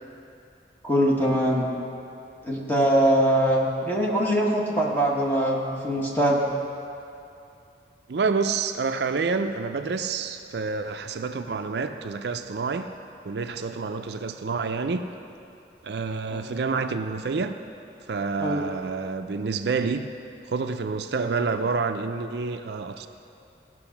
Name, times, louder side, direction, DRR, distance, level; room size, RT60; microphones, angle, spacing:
voice 1, 0.8-1.7 2.4-6.4 16.3-16.4 18.4-18.6, right 1 dB, 10° left, -3 dB, 1.4 m, -22 dB
voice 2, 8.1-12.9 13.2-15.1 15.8-17.6 18.1-20.1 20.5-23.1, right 4 dB, 70° right, 8 dB, 0.4 m, -28 dB
16.5 x 6.1 x 5.9 m, 2.7 s
head